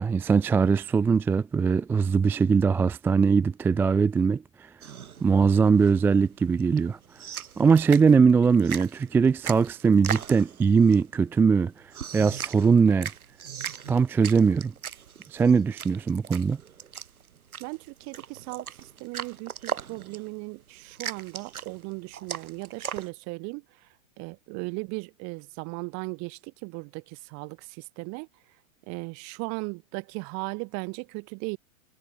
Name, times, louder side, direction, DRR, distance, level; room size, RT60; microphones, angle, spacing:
voice 1, 0.0-4.7 5.2-7.0 7.6-11.7 12.1-13.1 13.9-14.7 15.3-16.6, right 5 dB, 5° right, 0.4 m, -21 dB
sound 1, 4.8-23.1, right 8 dB, 85° right, 7.6 m, -39 dB
voice 2, 17.6-23.6 24.2-28.3 28.9-31.6, right 32 dB, 40° right, 3.0 m, -37 dB
hypercardioid pair, 130°, 42 cm